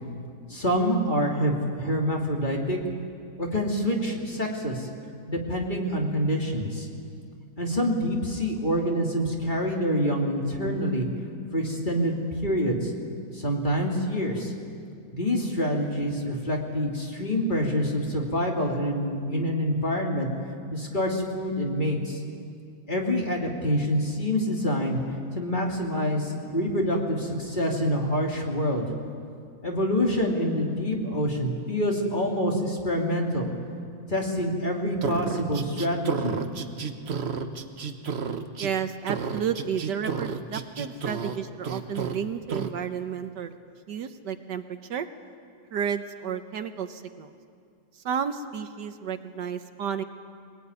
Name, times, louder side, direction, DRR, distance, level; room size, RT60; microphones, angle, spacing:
voice 1, 0.5-2.8 3.4-4.9 5.3-6.9 7.6-11.1 11.5-12.9 13.3-14.5 15.1-20.3 20.7-22.2 22.9-25.0 25.3-28.9 29.6-33.5 34.1-36.4, equal, 25° left, 0 dB, 3.0 m, -26 dB
sound 1, 35.0-38.7 39.1-41.4 41.6-42.2 42.5-42.7, right 6 dB, 40° right, 1.0 m, -31 dB
voice 2, 38.6-43.6 43.9-44.6 44.9-45.1 45.7-47.3 48.0-50.0, right 7 dB, 65° right, 9 dB, 1.5 m, -31 dB
22.5 x 19.5 x 9.7 m, 2.3 s
omnidirectional pair, 2.1 m